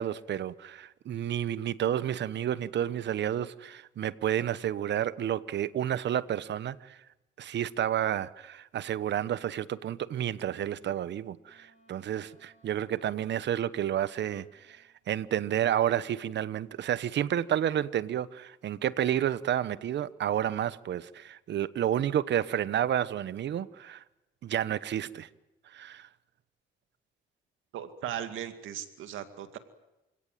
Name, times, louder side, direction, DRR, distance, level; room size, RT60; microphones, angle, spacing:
voice 1, 0.0-7.0 7.4-24.0 24.4-25.3 25.7-26.1, right 10 dB, 65° right, 1.1 m, -30 dB
Wind instrument woodwind instrument, 11.4-14.9, equal, 35° left, 7.7 m, -65 dB
voice 2, 27.7-29.6, right 10 dB, 85° right, 2.3 m, -37 dB
28.5 x 17.5 x 9.2 m
cardioid pair, 90°, 20 cm